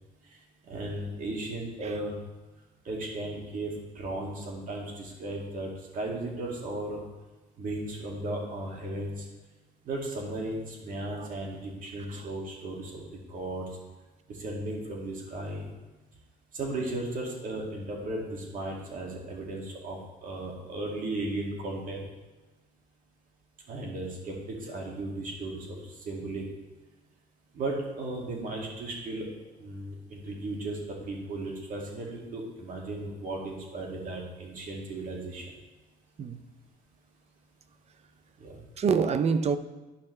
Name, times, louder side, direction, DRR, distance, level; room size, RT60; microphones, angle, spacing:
voice 1, 0.7-2.1 2.8-7.0 7.6-9.2 9.9-13.7 14.4-15.7 16.5-22.0 23.7-25.8 26.1-26.4 27.5-29.3 29.6-30.8 31.1-35.4 38.4-38.6, right 2 dB, 55° right, 2.2 m, -35 dB
voice 2, 38.8-39.6, right 6 dB, 40° right, 0.5 m, -26 dB
12.0 x 5.7 x 3.2 m
cardioid pair, 110°, 17 cm